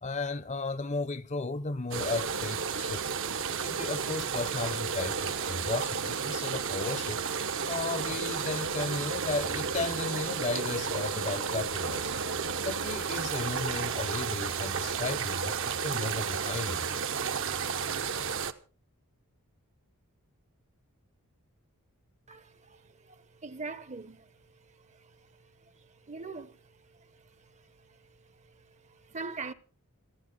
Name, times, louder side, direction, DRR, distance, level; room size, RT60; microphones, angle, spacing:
voice 1, 0.0-3.0 3.6-7.2 7.7-12.1 12.6-16.9, left 3 dB, 30° left, 0.8 m, -34 dB
sound 1, 1.9-18.5, right 6 dB, 60° right, 1.0 m, -32 dB
voice 2, 22.3-22.8 23.4-24.3 26.1-26.6 29.1-29.5, right 4 dB, 30° right, 0.8 m, -40 dB
27.5 x 9.3 x 3.9 m
head